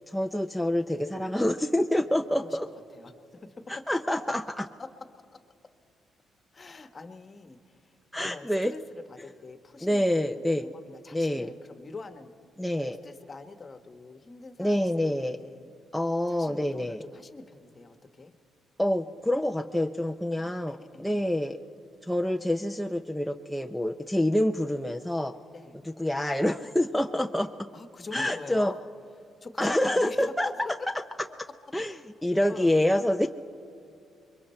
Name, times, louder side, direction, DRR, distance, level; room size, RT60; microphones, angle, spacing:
voice 1, 0.1-2.7 3.7-4.6 8.1-8.7 9.8-10.7 11.1-11.5 12.6-13.0 14.6-15.4 15.9-17.0 18.8-21.6 22.0-25.3 26.0-27.5 28.1-28.7 29.6-30.7 31.7-31.9 32.2-33.3, left 1 dB, 5° left, 4 dB, 0.6 m, -27 dB
voice 2, 0.9-1.3 2.4-2.6 2.9-3.7 4.8-4.9 5.3-5.4 6.5-8.0 8.2-12.3 12.8-15.7 16.3-18.3 20.0-21.2 25.5-25.8 27.7-28.8 29.2-30.3 30.8-30.9 32.5-32.7, left 3 dB, 35° left, 8 dB, 1.2 m, -44 dB
27.0 x 23.0 x 4.4 m, 2.6 s
cardioid pair, 90°, 0 cm